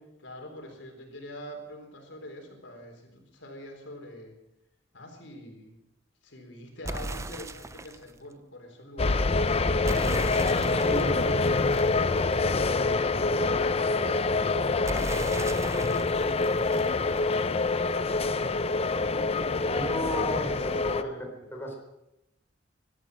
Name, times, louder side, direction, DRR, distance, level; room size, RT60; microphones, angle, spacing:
voice 1, 0.2-4.4 4.9-5.8 6.2-9.3 10.4-11.9 20.1-21.2, left 1 dB, 85° left, 3 dB, 4.0 m, -45 dB
sound 1, 6.8-8.1 9.8-12.6 14.8-17.6, right 2 dB, 15° right, 0.6 m, -38 dB
sound 2, 9.0-21.0, left 3 dB, 35° left, 0.6 m, -26 dB
voice 2, 10.8-11.2 19.6-21.8, equal, 15° left, 1 dB, 3.9 m, -33 dB
18.0 x 12.5 x 6.4 m, 0.88 s
head